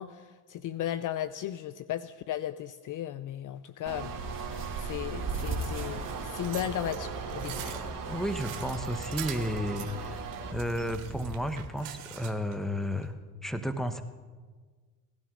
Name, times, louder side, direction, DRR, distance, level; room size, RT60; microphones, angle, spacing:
voice 1, 0.0-4.1 4.8-7.8, left 11 dB, 45° left, 15 dB, 0.5 m, -35 dB
sound 1, 3.8-10.5, right 6 dB, 45° right, 2.2 m, -40 dB
sound 2, 3.9-11.6, right 3 dB, 30° right, 2.5 m, -39 dB
sound 3, 6.2-12.6 13.0-13.1, right 13 dB, 80° right, 1.1 m, -44 dB
voice 2, 7.6-13.2 13.4-14.0, equal, ahead, 9 dB, 1.0 m, -33 dB
17.5 x 12.5 x 3.8 m, 1.4 s
supercardioid pair, 75°, 43 cm